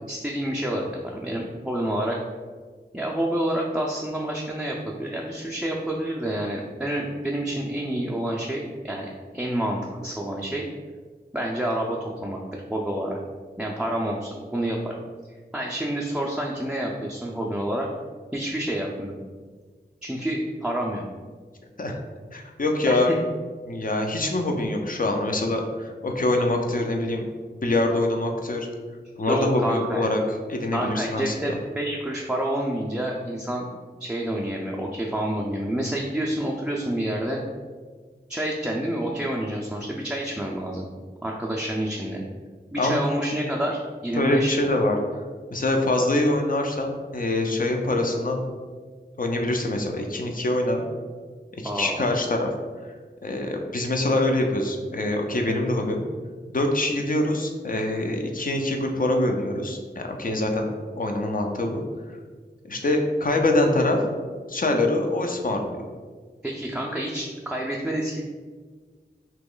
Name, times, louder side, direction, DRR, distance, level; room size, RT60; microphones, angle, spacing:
voice 1, 0.0-2.2 2.9-10.6 11.3-13.2 13.6-15.0 15.5-17.9 18.3-19.2 20.0-21.0 22.9-23.2 29.3-30.2 30.7-33.6 34.0-37.4 38.3-40.9 41.2-42.2 42.7-44.6 51.6-52.0 66.4-68.2, right 1 dB, 5° right, -2 dB, 0.4 m, -28 dB
voice 2, 22.3-23.1 23.7-27.2 27.6-28.7 29.2-30.2 30.5-31.5 42.8-43.0 44.1-45.0 45.5-48.4 49.2-50.8 51.6-52.5 53.2-56.0 56.5-60.7 61.0-61.8 62.6-64.0 64.5-65.8, left 2 dB, 50° left, 3 dB, 0.5 m, -24 dB
3.0 x 2.9 x 3.8 m, 1.5 s
wide cardioid pair, 65°, 18 cm